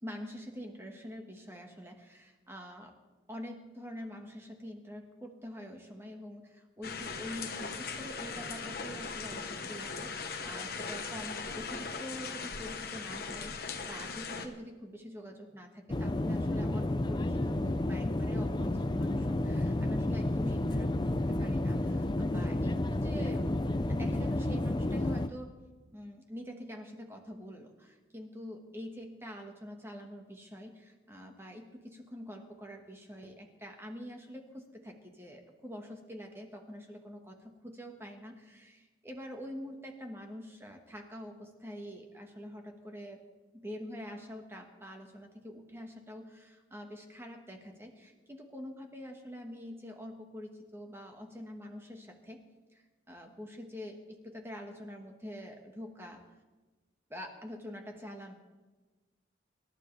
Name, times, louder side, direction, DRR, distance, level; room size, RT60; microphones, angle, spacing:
voice 1, 0.0-3.0 3.3-25.5 25.9-43.2 43.5-52.4 52.7-56.2 57.1-58.3, equal, 15° right, 2 dB, 1.5 m, -45 dB
sound 1, 6.8-14.5, left 5 dB, 50° left, 1.2 m, -39 dB
sound 2, 15.9-25.3, left 1 dB, 25° left, 0.5 m, -31 dB
26.0 x 12.0 x 3.4 m, 1.2 s
head